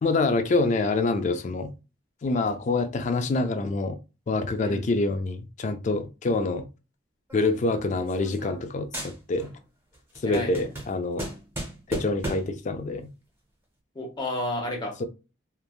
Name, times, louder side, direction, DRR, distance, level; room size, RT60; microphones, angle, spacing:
voice 1, 0.0-1.7 2.2-4.0 4.3-6.7 7.3-9.5 10.2-11.3 11.9-13.1, left 3 dB, 40° left, 0.3 m, -26 dB
sound 1, 7.3-8.7 8.9-9.6 9.9-12.6, right 1 dB, 15° right, 0.8 m, -37 dB
voice 2, 10.2-10.7 13.9-15.0, left 1 dB, 25° left, 0.8 m, -32 dB
3.1 x 2.2 x 2.3 m
head